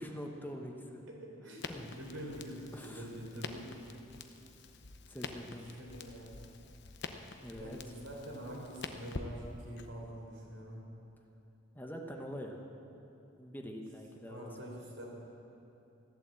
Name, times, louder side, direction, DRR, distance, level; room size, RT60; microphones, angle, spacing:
voice 1, 0.0-1.0 1.7-1.9 2.7-3.1 5.1-5.7 7.4-7.8 11.7-12.6 13.4-14.5, equal, 10° left, 2 dB, 1.1 m, -44 dB
voice 2, 1.1-3.9 5.5-6.4 7.5-10.9 14.3-15.1, equal, 90° right, -2 dB, 3.9 m, -46 dB
Crackle, 1.6-9.9, left 4 dB, 60° left, 0.8 m, -47 dB
15.0 x 12.0 x 7.6 m, 2.8 s
head